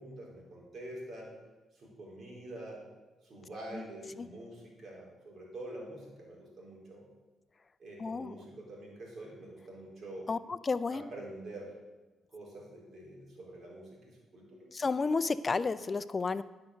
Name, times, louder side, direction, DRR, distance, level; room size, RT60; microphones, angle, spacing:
voice 1, 0.0-1.3 1.7-2.8 3.2-7.0 7.8-10.3 10.9-11.7 12.3-14.7, right 1 dB, 55° right, -3 dB, 4.1 m, -46 dB
voice 2, 8.0-8.3 10.3-11.0 14.7-16.4, left 4 dB, 35° left, 14 dB, 0.5 m, -31 dB
10.5 x 5.8 x 6.6 m, 1.2 s
supercardioid pair, 65°, 0 cm